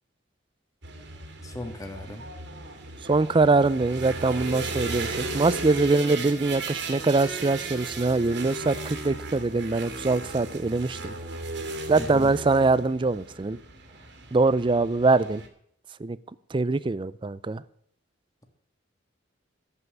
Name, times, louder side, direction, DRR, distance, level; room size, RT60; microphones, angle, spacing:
sound 1, 0.8-15.5, right 3 dB, 65° right, 2.1 m, -36 dB
voice 1, 1.4-2.2 11.9-12.3, left 1 dB, 20° left, 5 dB, 1.7 m, -37 dB
voice 2, 3.0-11.1 11.9-13.6 14.3-15.4 16.0-16.2 16.5-17.6, right 3 dB, 25° right, 18 dB, 0.4 m, -23 dB
14.0 x 5.7 x 9.0 m, 0.65 s
head